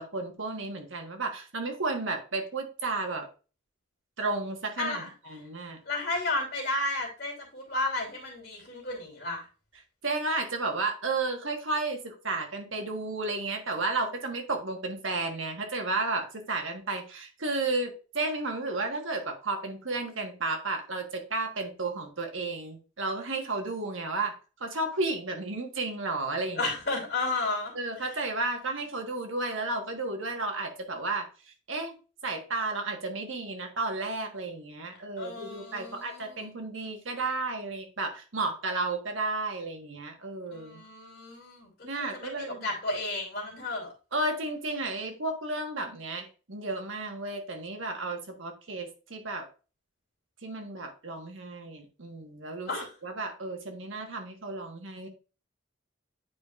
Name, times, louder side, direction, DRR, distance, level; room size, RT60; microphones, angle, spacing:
voice 1, 0.0-3.3 4.2-5.8 10.0-24.3 24.6-26.7 27.7-31.3 31.7-31.9 32.2-40.8 41.8-42.7 44.1-49.5 50.4-52.7 53.0-55.1, right 3 dB, 75° right, 4 dB, 1.4 m, -33 dB
voice 2, 4.8-5.1 5.9-9.4 26.6-27.7 35.2-36.5 40.5-41.7 42.0-43.9 52.7-52.9, left 2 dB, 50° left, -1 dB, 2.8 m, -33 dB
9.3 x 4.8 x 2.4 m, 0.34 s
head